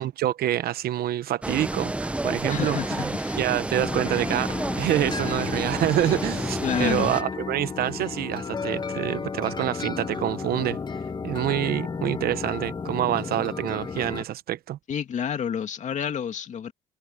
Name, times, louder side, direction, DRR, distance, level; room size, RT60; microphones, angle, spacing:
voice 1, 0.0-10.8 11.2-14.8, right 13 dB, 65° right, 1.0 m, -27 dB
sound 1, 1.4-7.2, right 1 dB, 5° right, 0.7 m, -30 dB
voice 2, 2.5-3.4 6.6-7.1 14.9-16.7, left 8 dB, 45° left, 2.4 m, -29 dB
sound 2, 3.7-14.2, left 5 dB, 25° left, 1.1 m, -33 dB
cardioid pair, 110°, 17 cm